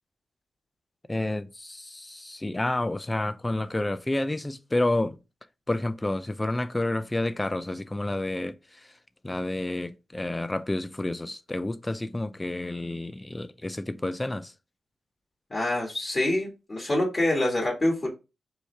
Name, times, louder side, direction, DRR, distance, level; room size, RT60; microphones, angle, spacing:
voice 1, 1.1-5.2 5.7-8.9 9.2-14.5, left 1 dB, 20° left, 0.5 m, -30 dB
voice 2, 15.5-18.1, left 1 dB, 35° left, 1.7 m, -26 dB
4.8 x 2.6 x 3.3 m
cardioid pair, 60°, 0 cm